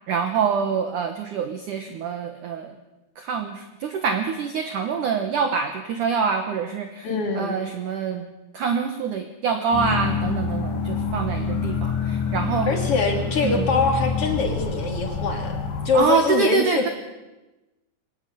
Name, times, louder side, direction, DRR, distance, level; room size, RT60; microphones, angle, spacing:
voice 1, 0.1-2.7 3.2-7.1 7.3-12.8 13.4-13.7 15.9-16.9, right 6 dB, 85° right, 6 dB, 1.8 m, -25 dB
voice 2, 7.0-7.6 12.7-15.6 15.8-16.9, left 4 dB, 40° left, 3 dB, 2.8 m, -23 dB
sound 1, 9.7-15.9, left 5 dB, 60° left, 4.0 m, -27 dB
23.5 x 19.0 x 7.0 m, 1.1 s
omnidirectional pair, 5.5 m